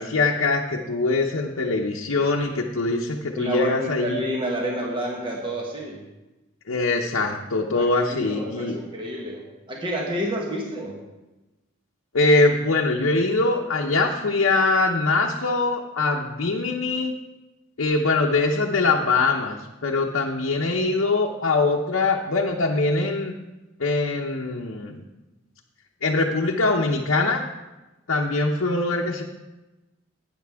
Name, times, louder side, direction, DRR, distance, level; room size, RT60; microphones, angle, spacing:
voice 1, 0.0-4.2 6.7-8.8 12.1-17.1 17.8-23.3 23.8-25.0 26.0-27.4 28.1-29.2, left 3 dB, 80° left, -1 dB, 0.8 m, -23 dB
voice 2, 3.4-6.0 7.7-10.9, equal, 25° right, -1 dB, 1.3 m, -29 dB
12.5 x 9.1 x 3.5 m, 1.1 s
head